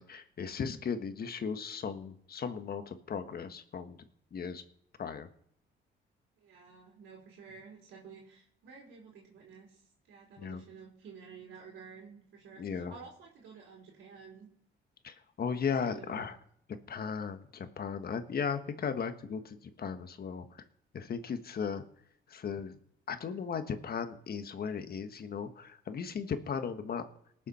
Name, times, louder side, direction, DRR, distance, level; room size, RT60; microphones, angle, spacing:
voice 1, 0.0-4.0 4.3-4.6 5.0-5.3 10.4-10.6 12.6-12.9 15.0-16.4 16.9-20.5 20.9-21.8 22.3-22.7 23.1-27.0, left 6 dB, 50° left, 9 dB, 1.4 m, -36 dB
voice 2, 6.4-14.5 15.5-16.3, right 5 dB, 85° right, -3 dB, 3.7 m, -52 dB
19.5 x 7.3 x 4.3 m, 0.68 s
cardioid pair, 90°, 20 cm